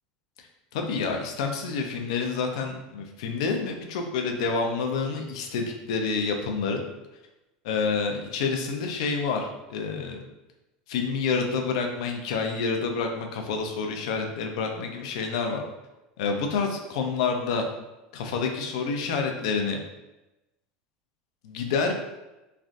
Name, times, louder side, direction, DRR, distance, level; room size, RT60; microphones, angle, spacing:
voice 1, 0.7-6.8 7.6-10.2 10.9-15.6 16.2-17.7 18.1-19.8 21.4-21.9, left 5 dB, 85° left, 3 dB, 0.5 m, -28 dB
3.2 x 2.5 x 2.5 m, 1.0 s
supercardioid pair, 155°, 3 cm